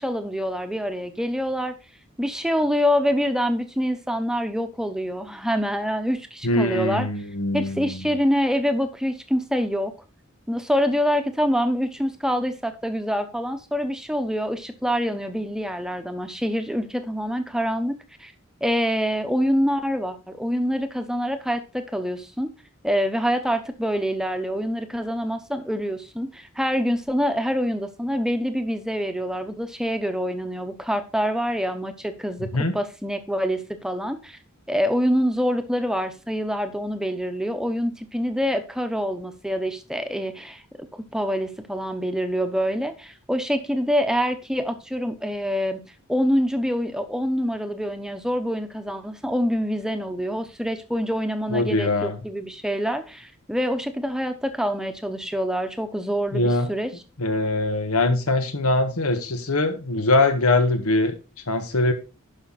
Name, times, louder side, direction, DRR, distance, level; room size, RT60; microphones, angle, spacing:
voice 1, 0.0-1.7 2.2-7.1 7.5-9.9 10.5-18.3 18.6-22.5 22.8-34.4 34.7-45.8 46.1-56.9, equal, 5° right, 0.9 m, -26 dB
voice 2, 6.4-8.1 32.5-32.7 51.5-52.2 56.3-56.7 57.2-61.2 61.5-61.9, left 2 dB, 85° left, 1.6 m, -22 dB
11.0 x 5.7 x 4.1 m
head